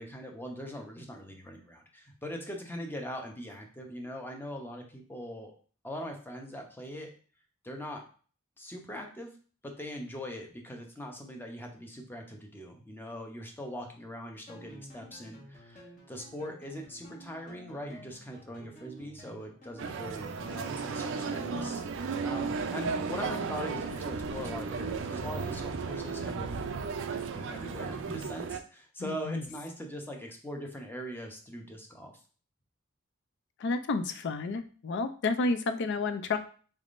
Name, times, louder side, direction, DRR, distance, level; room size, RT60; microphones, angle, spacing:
voice 1, 0.0-5.5 5.8-7.1 7.6-8.0 8.6-9.3 9.6-21.8 22.2-26.5 27.5-32.2, equal, 10° left, 2 dB, 0.6 m, -41 dB
sound 1, 14.5-28.2, equal, 40° left, 1.0 m, -51 dB
sound 2, 19.8-28.6, right 5 dB, 65° right, 0.4 m, -34 dB
voice 2, 29.0-29.4 33.6-36.4, left 3 dB, 60° left, 10 dB, 0.4 m, -31 dB
4.0 x 3.5 x 2.5 m, 0.41 s
head